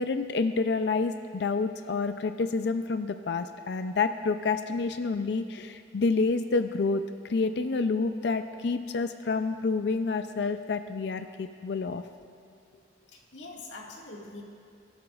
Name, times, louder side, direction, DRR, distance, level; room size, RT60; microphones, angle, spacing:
voice 1, 0.0-12.0, left 4 dB, 65° left, 9 dB, 0.4 m, -28 dB
voice 2, 13.1-14.4, left 2 dB, 85° left, -1 dB, 1.9 m, -44 dB
24.5 x 12.5 x 2.4 m, 2.5 s
head